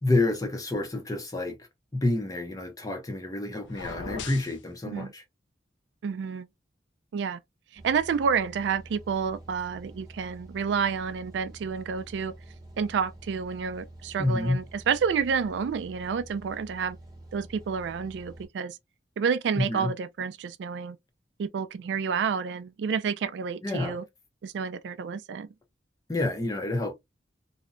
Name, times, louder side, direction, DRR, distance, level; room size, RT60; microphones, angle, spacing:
voice 1, 0.0-5.2 14.2-14.6 19.6-19.9 23.6-24.0 26.1-26.9, left 2 dB, 20° left, 0.5 m, -28 dB
sound 1, 3.6-4.6, left 4 dB, 75° left, 0.5 m, -38 dB
voice 2, 6.0-6.5 7.1-7.4 7.7-12.3 12.8-17.0 17.3-18.8 19.2-21.0 21.4-24.0 24.4-25.5, right 6 dB, 65° right, 0.3 m, -29 dB
sound 2, 7.8-18.5, right 1 dB, 20° right, 0.7 m, -48 dB
2.8 x 2.1 x 2.4 m
head